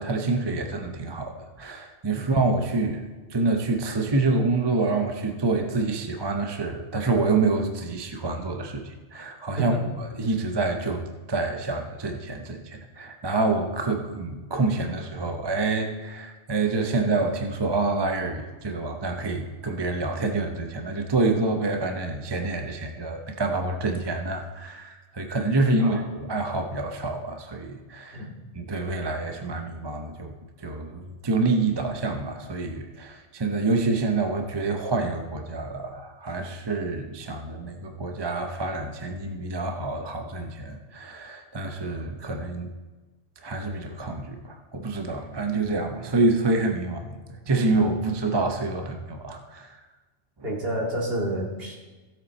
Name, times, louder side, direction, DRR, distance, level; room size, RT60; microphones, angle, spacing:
voice 1, 0.0-9.7 10.0-28.3 28.5-42.7 43.4-49.8, right 3 dB, 25° right, 4 dB, 0.7 m, -27 dB
voice 2, 50.4-51.8, right 1 dB, 55° right, -3 dB, 2.5 m, -29 dB
16.0 x 7.8 x 4.2 m, 1.3 s
omnidirectional pair, 1.2 m